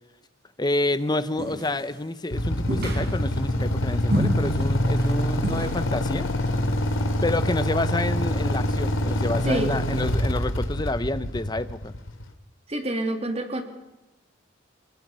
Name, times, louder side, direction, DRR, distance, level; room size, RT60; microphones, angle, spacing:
voice 1, 0.6-6.3 7.2-11.9, left 2 dB, 20° left, 14 dB, 0.8 m, -28 dB
sound 1, 1.4-2.0 2.7-3.5 4.1-4.7 4.9-5.1 5.4-5.8, equal, 55° right, 5.3 m, -28 dB
Motorcycle / Idling, 2.3-12.2, left 1 dB, 85° left, 3.1 m, -25 dB
voice 2, 12.7-13.6, right 1 dB, 30° right, 4 dB, 3.0 m, -27 dB
30.0 x 20.5 x 5.6 m, 1.0 s
head